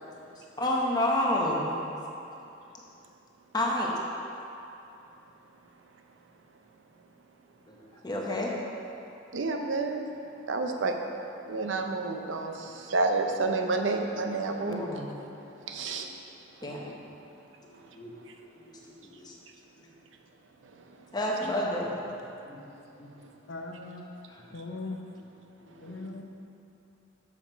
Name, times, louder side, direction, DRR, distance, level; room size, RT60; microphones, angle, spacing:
voice 1, 0.6-1.8 3.5-3.9 7.7-7.8 8.0-8.5 14.7-15.1 15.9-16.0 16.6-16.9 17.9-18.2 18.6-18.7 19.0-19.3 21.1-21.9 22.4-22.6 23.0-23.1 25.6-26.2, left 1 dB, 20° left, -2 dB, 0.9 m, -30 dB
voice 2, 9.3-10.1 10.5-11.0 11.5-15.0 15.7-16.1 16.6-16.9 17.7-17.8 18.3-18.4 20.6-21.1 25.7-26.0, right 3 dB, 85° right, 4 dB, 0.6 m, -30 dB
voice 3, 23.5-24.0 24.5-25.0 25.8-26.2, left 3 dB, 75° left, 3 dB, 0.6 m, -39 dB
7.2 x 5.9 x 4.5 m, 2.8 s
head